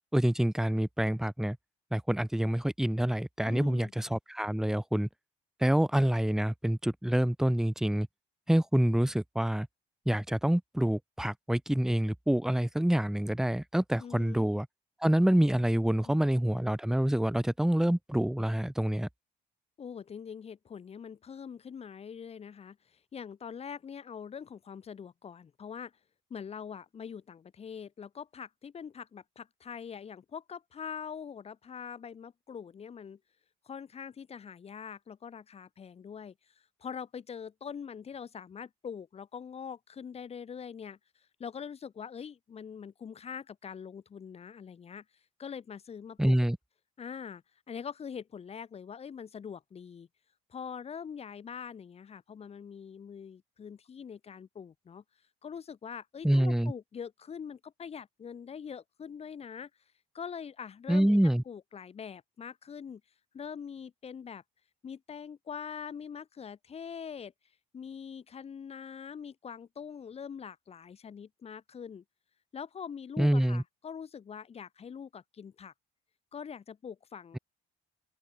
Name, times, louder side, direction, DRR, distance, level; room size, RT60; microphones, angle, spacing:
voice 1, 0.1-1.6 1.9-5.1 5.6-8.1 8.5-9.7 10.1-14.7 15.0-19.1 46.2-46.6 56.2-56.7 60.9-61.4 73.2-73.6, right 1 dB, 5° right, 1.0 m, -27 dB
voice 2, 3.4-3.9 14.0-14.5 16.0-16.2 19.8-25.9 26.3-33.2 33.7-36.3 36.8-41.0 41.4-45.0 45.4-46.4 47.0-47.4 47.7-50.1 50.5-55.0 55.4-59.7 60.1-61.1 61.5-63.0 63.3-64.4 64.8-67.3 67.7-72.0 72.5-75.7 76.3-77.4, left 7 dB, 35° left, 2.4 m, -43 dB
open air
cardioid pair, 110°, 17 cm